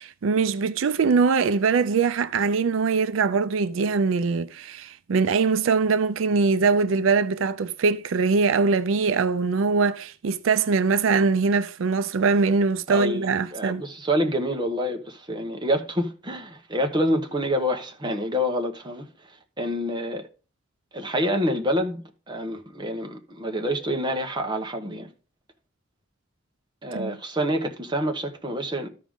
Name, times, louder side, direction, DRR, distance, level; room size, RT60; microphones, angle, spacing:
voice 1, 0.0-13.8 26.9-27.2, right 4 dB, 85° right, 0.4 m, -22 dB
voice 2, 12.9-19.1 19.6-20.3 20.9-25.1 26.8-28.9, equal, 25° right, 1.1 m, -27 dB
13.0 x 5.0 x 3.6 m
head